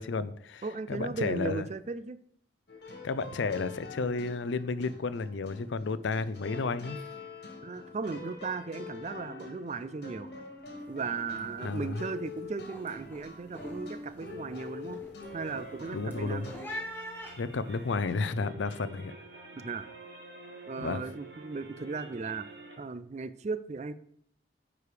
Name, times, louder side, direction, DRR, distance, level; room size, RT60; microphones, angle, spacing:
voice 1, 0.0-0.6 0.9-1.6 3.0-7.0 11.6-12.0 15.9-16.5 17.4-19.1 20.8-21.0, left 4 dB, 85° left, 15 dB, 0.5 m, -32 dB
voice 2, 0.6-2.2 7.6-10.3 10.9-15.0 15.3-16.4 19.5-19.9 20.7-22.5 22.8-23.9, right 4 dB, 35° right, 13 dB, 0.4 m, -36 dB
sound 1, 2.7-16.7, left 4 dB, 60° left, 1.7 m, -45 dB
sound 2, 10.8-11.1 11.3-11.8 12.2-18.1, equal, 10° left, 1.4 m, -45 dB
sound 3, 15.2-22.8, right 3 dB, 65° right, 1.9 m, -48 dB
9.6 x 4.9 x 5.0 m, 0.66 s
head